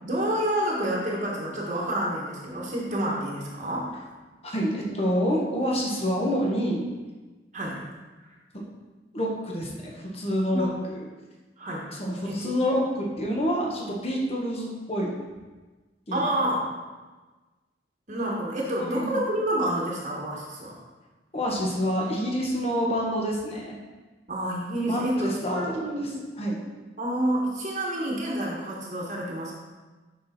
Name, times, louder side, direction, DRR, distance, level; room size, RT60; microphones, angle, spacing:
voice 1, 0.0-3.9 7.5-7.8 8.2-8.3 10.5-10.7 11.6-11.9 12.2-12.5 16.1-16.6 18.1-20.8 24.3-26.2 27.0-29.6, right 1 dB, 40° right, -3 dB, 1.3 m, -29 dB
voice 2, 4.4-6.8 9.1-11.0 12.0-15.2 16.1-16.3 18.8-19.2 21.3-23.8 24.9-25.6 26.0-26.1 26.4-26.6, equal, 35° left, -2 dB, 1.3 m, -27 dB
6.3 x 6.0 x 4.3 m, 1.3 s
head